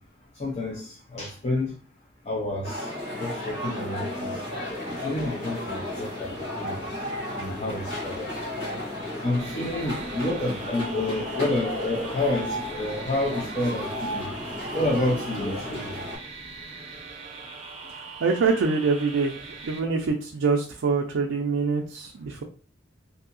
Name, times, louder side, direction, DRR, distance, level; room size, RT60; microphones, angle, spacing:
voice 1, 0.4-1.7 2.3-2.9 3.2-4.3 5.0-6.9 7.3-8.3 9.2-14.3 14.7-16.0, left 1 dB, 35° left, 0.6 m, -29 dB
sound 1, 2.6-16.2, left 1 dB, 65° left, 1.4 m, -34 dB
sound 2, 9.4-19.8, right 4 dB, 30° right, 0.6 m, -41 dB
sound 3, 9.7-9.8 10.1-10.2 10.7-11.6 12.3-13.3 13.8-14.7 16.0-16.2, right 1 dB, 50° left, 1.1 m, -38 dB
voice 2, 18.2-19.3 19.6-22.4, right 4 dB, 90° right, 0.4 m, -24 dB
2.7 x 2.7 x 2.5 m
head